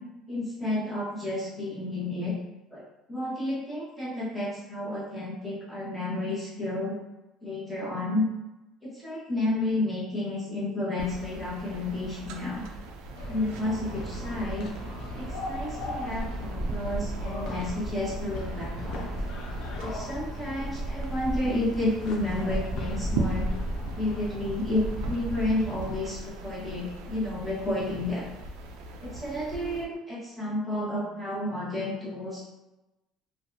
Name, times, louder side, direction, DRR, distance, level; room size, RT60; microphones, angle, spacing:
voice 1, 0.3-2.3 2.7-2.8 3.1-7.0 7.4-8.3 8.8-12.6 13.3-14.7 15.1-19.1 19.8-23.5 24.0-28.3 29.0-32.5, left 1 dB, ahead, -9 dB, 0.9 m, -31 dB
sound 1, 11.0-29.8, right 2 dB, 90° right, 0.3 m, -39 dB
sound 2, 13.2-26.0, equal, 60° left, 0.4 m, -35 dB
2.6 x 2.2 x 2.5 m, 1.0 s
cardioid pair, 130°, 0 cm